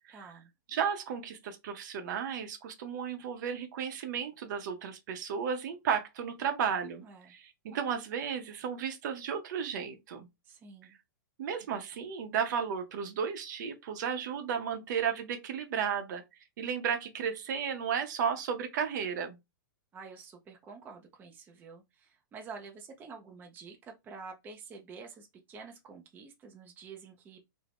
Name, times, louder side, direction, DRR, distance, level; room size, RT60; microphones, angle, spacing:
voice 1, 0.1-0.5 7.0-7.3 10.5-11.0 19.9-27.4, right 5 dB, 15° right, 0.4 m, -48 dB
voice 2, 0.7-10.3 11.4-16.2 16.6-19.4, right 7 dB, 60° right, 0.6 m, -34 dB
2.4 x 2.0 x 3.3 m
hypercardioid pair, 140°, 11 cm